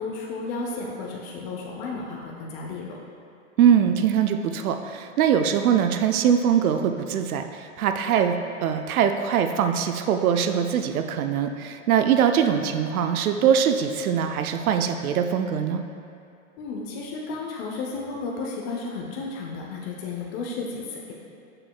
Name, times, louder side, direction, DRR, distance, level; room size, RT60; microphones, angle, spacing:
voice 1, 0.0-3.0 16.6-21.1, left 3 dB, 45° left, -2 dB, 0.9 m, -33 dB
voice 2, 3.6-8.4 8.6-15.8, right 8 dB, 90° right, 7 dB, 0.6 m, -22 dB
7.0 x 6.8 x 2.4 m, 2.6 s
hypercardioid pair, 125°, 42 cm